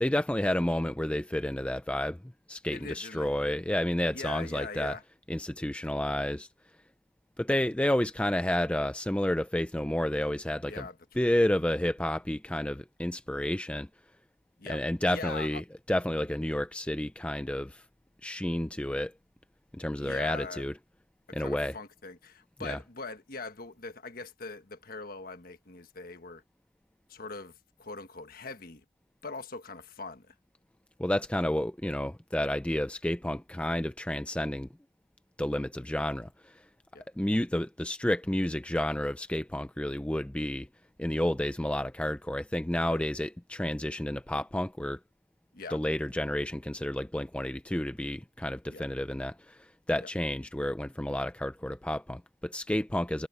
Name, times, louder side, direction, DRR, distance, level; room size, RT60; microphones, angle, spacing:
voice 1, 0.0-2.2 2.5-4.9 5.3-6.5 7.4-10.8 11.2-13.9 14.7-17.8 18.2-19.1 19.7-20.7 21.3-21.7 22.6-22.8 31.0-34.7 35.4-36.6 37.2-40.7 41.0-45.0 45.7-53.3, left 1 dB, 5° left, 0.4 m, -30 dB
voice 2, 2.7-3.4 4.1-5.0 10.6-11.0 14.6-14.8 15.1-15.6 20.0-20.6 21.3-26.4 27.1-28.8 29.2-30.3 36.9-37.1 42.9-43.0 45.5-45.8 48.7-48.9 50.0-50.1, left 3 dB, 50° left, 1.4 m, -42 dB
head